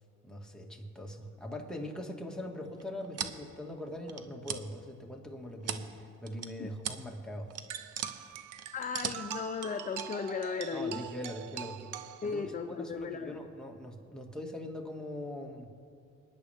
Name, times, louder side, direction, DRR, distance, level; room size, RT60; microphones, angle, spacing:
voice 1, 0.2-7.5 10.7-15.7, left 1 dB, ahead, -1 dB, 2.0 m, -42 dB
sound 1, 2.8-3.4 4.1-4.6 5.2-5.9 6.3-6.5 6.8-7.0 7.3-8.1 8.6-9.4 10.0-10.1, right 7 dB, 55° right, 0.9 m, -37 dB
sound 2, 7.7-12.7, right 10 dB, 80° right, 0.6 m, -44 dB
voice 2, 8.7-11.0 12.2-13.4, left 5 dB, 25° left, 8 dB, 0.6 m, -36 dB
26.0 x 10.0 x 3.6 m, 2.3 s
cardioid pair, 90°, 30 cm